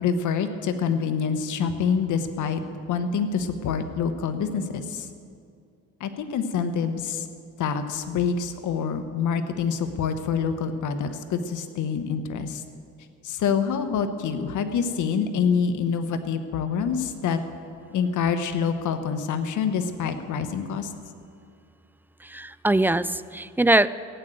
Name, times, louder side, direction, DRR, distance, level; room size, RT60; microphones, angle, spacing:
voice 1, 0.0-2.6 2.9-5.1 6.0-7.3 7.6-12.6 13.2-17.4 17.9-20.9, left 6 dB, 80° left, 9 dB, 1.2 m, -26 dB
voice 2, 22.2-23.9, right 2 dB, 5° right, 15 dB, 0.3 m, -22 dB
15.5 x 9.2 x 7.7 m, 2.4 s
cardioid pair, 90°, 30 cm